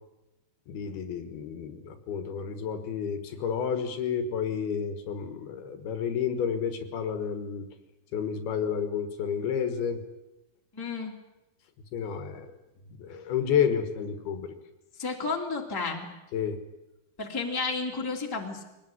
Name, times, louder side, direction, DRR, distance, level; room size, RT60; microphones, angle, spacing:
voice 1, 0.7-7.7 8.1-10.0 11.9-12.5 13.0-14.5 16.3-16.6, left 7 dB, 70° left, 9 dB, 3.4 m, -30 dB
voice 2, 10.7-11.1 15.0-16.1 17.2-18.6, left 4 dB, 5° left, 1 dB, 2.1 m, -32 dB
23.0 x 19.0 x 9.8 m, 0.96 s
omnidirectional pair, 4.9 m